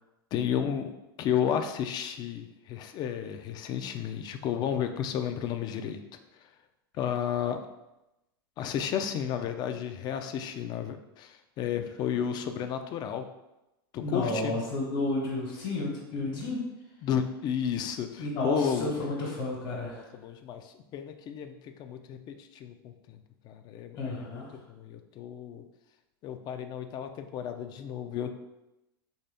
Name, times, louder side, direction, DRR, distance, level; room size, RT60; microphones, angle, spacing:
voice 1, 0.3-0.9 1.2-6.0 7.0-7.6 8.6-13.3 13.9-14.5 17.0-18.9 19.9-23.2 23.4-24.4 24.7-25.6 26.2-28.3, left 8 dB, 35° left, 7 dB, 0.4 m, -32 dB
voice 2, 14.0-16.6 18.2-20.0 24.0-24.5, left 2 dB, 60° left, -3 dB, 1.2 m, -31 dB
3.5 x 2.7 x 3.4 m, 0.96 s
hypercardioid pair, 105°, 13 cm